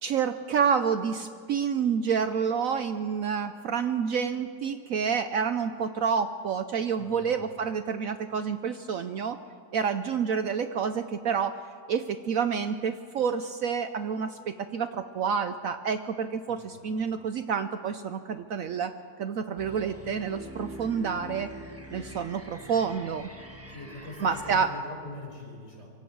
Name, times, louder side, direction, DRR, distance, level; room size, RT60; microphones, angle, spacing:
voice 1, 0.0-9.4 9.7-11.6 11.9-18.9 19.2-21.5 21.9-23.3 24.2-24.8, right 6 dB, 65° right, 10 dB, 1.0 m, -28 dB
voice 2, 7.0-7.4 16.5-16.9 23.7-25.9, left 2 dB, 45° left, -1 dB, 5.4 m, -43 dB
sound 1, 19.6-24.7, right 1 dB, 10° right, 1.2 m, -44 dB
26.0 x 23.0 x 4.7 m, 2.3 s
omnidirectional pair, 1.7 m